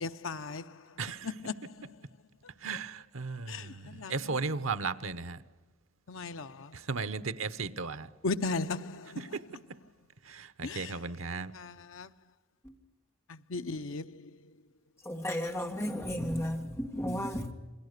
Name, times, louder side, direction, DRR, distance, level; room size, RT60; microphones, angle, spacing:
voice 1, 0.0-0.6 1.4-1.5 3.5-3.6 4.0-4.1 6.1-6.5 8.2-9.0 10.6-10.8 11.6-11.7 12.0-12.1 13.5-14.0, left 3 dB, 75° left, 0.7 m, -34 dB
voice 2, 1.0-1.4 2.6-5.4 6.7-8.1 9.1-9.4 10.3-11.5, right 4 dB, 90° right, 0.9 m, -36 dB
voice 3, 15.1-17.5, equal, 15° left, 2.0 m, -33 dB
28.0 x 22.0 x 6.7 m
head